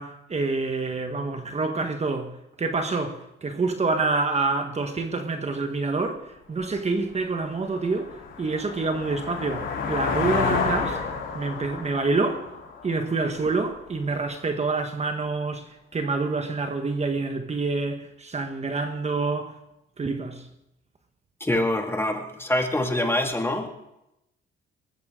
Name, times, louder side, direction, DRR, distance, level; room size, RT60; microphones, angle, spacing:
voice 1, 0.0-11.0 11.3-12.5 12.8-19.6 20.0-20.5, right 3 dB, 35° right, 1.4 m, -27 dB
sound 1, 6.6-6.7 7.2-13.8, left 5 dB, 75° left, 3.7 m, -30 dB
voice 2, 21.4-23.7, left 1 dB, 10° left, 2.2 m, -25 dB
20.0 x 14.0 x 3.8 m
cardioid pair, 90°, 20 cm